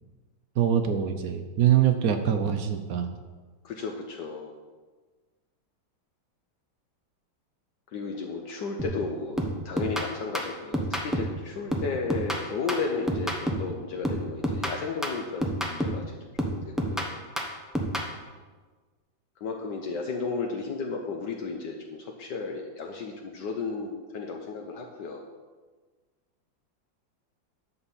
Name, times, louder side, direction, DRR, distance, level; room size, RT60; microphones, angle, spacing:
voice 1, 0.6-3.1, right 9 dB, 65° right, 7 dB, 0.9 m, -24 dB
voice 2, 3.6-4.5 7.9-16.0 16.4-17.1 19.4-25.2, left 4 dB, 65° left, 1 dB, 1.3 m, -34 dB
sound 1, 8.8-9.1 9.4-11.4 11.7-13.7 14.0-16.1 16.4-18.1, equal, ahead, 0.3 m, -30 dB
11.0 x 4.2 x 7.1 m, 1.4 s
omnidirectional pair, 2.1 m